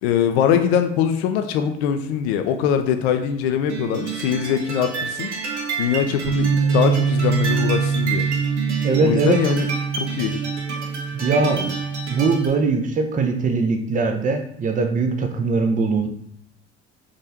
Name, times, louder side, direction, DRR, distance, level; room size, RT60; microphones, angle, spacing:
voice 1, 0.0-5.3 5.8-8.2 9.0-9.7 10.0-10.3, left 8 dB, 70° left, 8 dB, 0.5 m, -22 dB
sound 1, 3.7-12.6, right 5 dB, 90° right, 0.7 m, -30 dB
Bass guitar, 6.2-12.5, right 6 dB, 60° right, 1.3 m, -24 dB
voice 2, 8.8-9.4 11.1-11.7 12.1-16.1, right 4 dB, 25° right, 5 dB, 0.6 m, -21 dB
3.7 x 3.2 x 2.7 m, 0.69 s
figure-of-eight pair, 60°, 33 cm